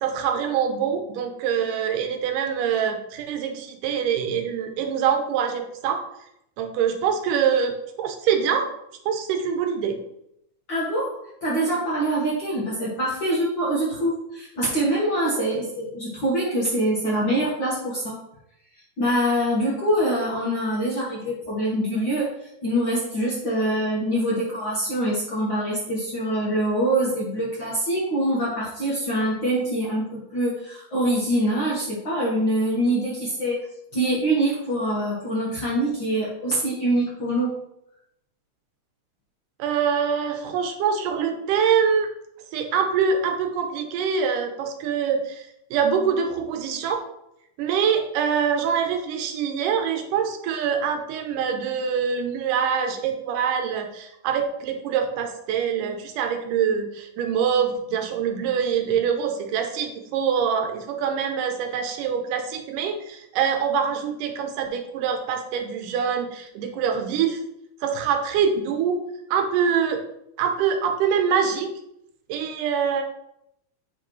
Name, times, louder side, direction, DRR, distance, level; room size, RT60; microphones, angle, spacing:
voice 1, 0.0-6.0 6.6-7.7 8.0-8.7 9.1-10.0 39.6-42.1 42.5-47.0 47.6-67.4 67.8-69.0 69.3-70.0 70.4-71.7 72.3-73.0, right 7 dB, 85° right, 5 dB, 2.2 m, -24 dB
voice 2, 10.7-18.2 19.0-33.7 33.9-37.6, right 1 dB, 55° left, -6 dB, 1.4 m, -24 dB
8.2 x 5.0 x 3.1 m, 0.80 s
omnidirectional pair, 3.8 m